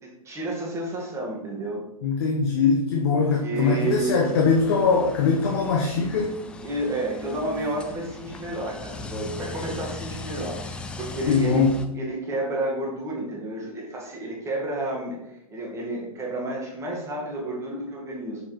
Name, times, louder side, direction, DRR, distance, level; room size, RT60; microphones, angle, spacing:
voice 1, 0.0-1.9 3.1-4.2 6.6-11.7 11.9-15.2 15.5-18.4, right 2 dB, 15° right, -3 dB, 2.1 m, -31 dB
voice 2, 2.0-6.3 11.3-11.8, left 5 dB, 45° left, 2 dB, 1.0 m, -22 dB
sound 1, 3.6-11.9, left 3 dB, 5° left, 0.3 m, -39 dB
6.7 x 4.8 x 4.6 m, 0.86 s
figure-of-eight pair, 110°, 19 cm